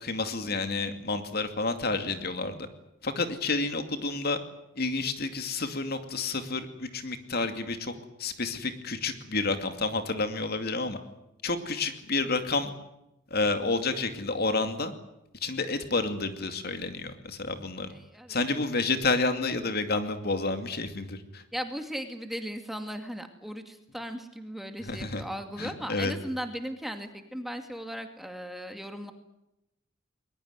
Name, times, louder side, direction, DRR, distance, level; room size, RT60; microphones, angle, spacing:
voice 1, 0.0-2.7 3.0-4.4 4.8-7.9 8.2-11.0 11.4-12.7 13.3-14.9 15.4-17.9 18.3-21.4 24.8-25.2 25.6-26.1, left 3 dB, 55° left, 8 dB, 2.5 m, -30 dB
voice 2, 17.9-18.4 21.5-29.1, equal, ahead, 6 dB, 2.3 m, -37 dB
21.0 x 20.5 x 9.7 m, 0.86 s
head